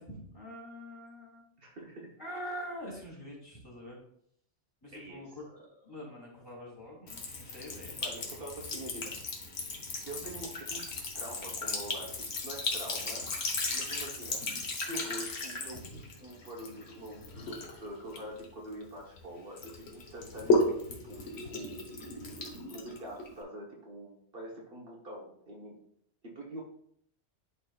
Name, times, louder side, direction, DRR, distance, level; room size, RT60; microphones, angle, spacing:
voice 1, 0.0-1.4 2.2-4.0 4.8-8.0 14.3-14.5 15.7-16.0 20.3-20.5, equal, 20° left, -5 dB, 2.6 m, -45 dB
voice 2, 1.6-2.1 4.9-5.2 8.0-9.2 10.1-13.2 13.7-14.4 14.7-15.8 16.2-21.9 22.7-25.8 26.2-26.6, right 1 dB, 55° right, -2 dB, 1.4 m, -45 dB
Sink (filling or washing) / Trickle dribble, 7.1-19.2 19.6-23.4, left 2 dB, 65° left, 1.4 m, -35 dB
11.0 x 4.3 x 2.4 m, 0.68 s
omnidirectional pair, 1.2 m